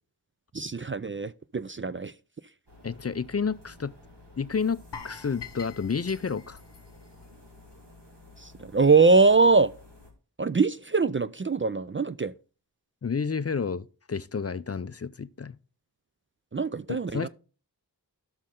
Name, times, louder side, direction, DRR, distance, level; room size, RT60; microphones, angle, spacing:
voice 1, 0.5-2.1 8.4-9.7 10.4-12.3 16.5-17.3, right 4 dB, 30° right, 0.4 m, -23 dB
sound 1, 2.7-10.1, left 2 dB, 80° right, 3.4 m, -52 dB
voice 2, 2.8-3.9 4.4-4.8 5.0-6.6 13.0-15.6 16.9-17.3, left 5 dB, 40° left, 0.4 m, -30 dB
sound 2, 4.9-7.9 8.2-8.4 8.9-9.0, left 6 dB, 90° left, 0.8 m, -45 dB
11.5 x 6.4 x 3.7 m
wide cardioid pair, 45°, 41 cm